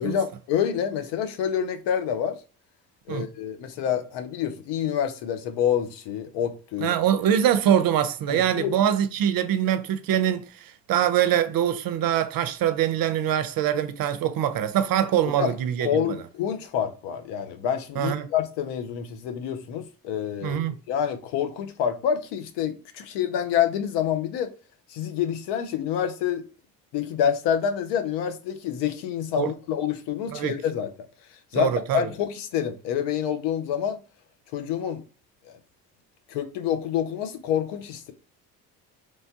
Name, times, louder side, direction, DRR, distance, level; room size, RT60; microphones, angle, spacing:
voice 1, 0.0-2.4 3.1-6.9 8.3-8.7 15.4-15.5 15.8-20.6 20.9-24.5 24.9-26.4 26.9-30.9 31.5-34.0 34.5-35.0 35.5-35.6 36.3-38.1, left 9 dB, 80° left, 0.7 m, -27 dB
voice 2, 6.8-16.2 18.0-18.3 20.4-20.7 29.4-29.5 30.3-30.6 31.5-32.1, right 10 dB, 55° right, 0.6 m, -24 dB
3.2 x 2.2 x 2.7 m
supercardioid pair, 65°, 41 cm